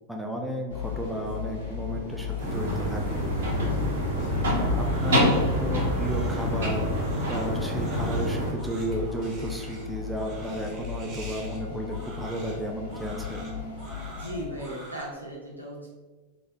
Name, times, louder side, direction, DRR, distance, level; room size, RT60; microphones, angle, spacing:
voice 1, 0.1-3.2 4.6-5.3 5.6-6.9 7.2-13.4, right 1 dB, 5° right, 0 dB, 0.5 m, -33 dB
sound 1, 0.7-14.5, left 7 dB, 55° left, 1.0 m, -35 dB
sound 2, 2.4-8.5, equal, 60° right, 1.2 m, -26 dB
voice 2, 3.7-4.2 14.0-15.9, equal, 85° right, -4 dB, 0.7 m, -38 dB
Crying sobbing, 4.2-15.0, right 2 dB, 30° right, 0.9 m, -47 dB
3.8 x 3.2 x 2.7 m, 1.3 s
figure-of-eight pair, 90°, 0 cm